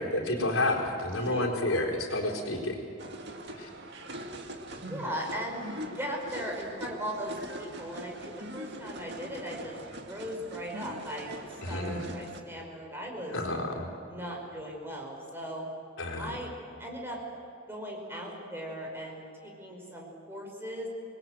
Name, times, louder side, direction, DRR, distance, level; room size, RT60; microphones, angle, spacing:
voice 1, 0.0-2.8 3.5-3.7 11.6-12.0 13.3-13.9 16.0-16.3, left 1 dB, 80° left, 1 dB, 4.3 m, -30 dB
voice 2, 1.1-1.5 4.9-9.7 10.0-13.4 14.1-15.6 16.2-16.5 16.8-17.2 17.7-20.9, equal, 10° right, -1 dB, 5.3 m, -38 dB
sound 1, 3.0-12.4, right 1 dB, 55° right, 1.9 m, -42 dB
28.0 x 20.5 x 7.8 m, 2.8 s
head